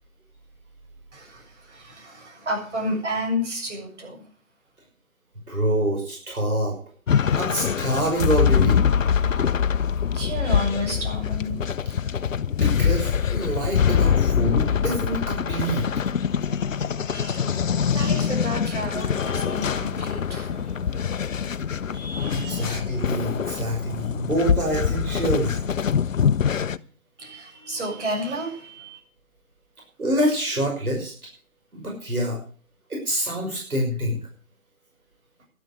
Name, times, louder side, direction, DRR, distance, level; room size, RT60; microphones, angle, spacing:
voice 1, 1.1-4.2 10.1-11.6 17.1-21.0 21.9-22.7 27.2-29.0, equal, 55° right, 0 dB, 7.5 m, -31 dB
voice 2, 5.5-6.8 7.4-8.8 12.6-15.8 22.3-25.6 30.0-31.1 31.7-32.4 32.9-34.2, right 1 dB, 85° right, 0 dB, 5.6 m, -26 dB
sound 1, 7.1-26.8, left 7 dB, 65° left, 0.7 m, -24 dB
11.5 x 11.0 x 6.5 m, 0.42 s
figure-of-eight pair, 155°, 43 cm